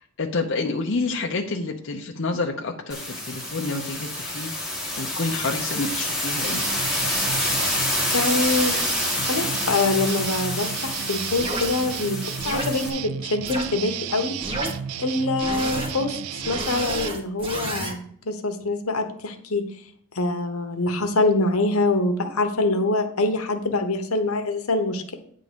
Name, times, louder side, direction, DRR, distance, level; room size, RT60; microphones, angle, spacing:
voice 1, 0.2-6.7, left 3 dB, 60° left, 0 dB, 0.8 m, -28 dB
sound 1, 2.9-12.9, left 1 dB, 5° right, 1.6 m, -27 dB
sound 2, 6.4-17.1, right 9 dB, 85° right, 0.4 m, -33 dB
voice 2, 8.1-8.8 9.3-14.4 15.0-19.7 20.1-25.1, left 2 dB, 85° left, 6 dB, 1.1 m, -25 dB
sound 3, 11.4-11.7 12.4-12.7 13.4-13.6 14.4-14.7 15.4-15.9 16.4-17.9, right 1 dB, 25° right, 1.5 m, -30 dB
9.4 x 3.8 x 6.8 m, 0.63 s
head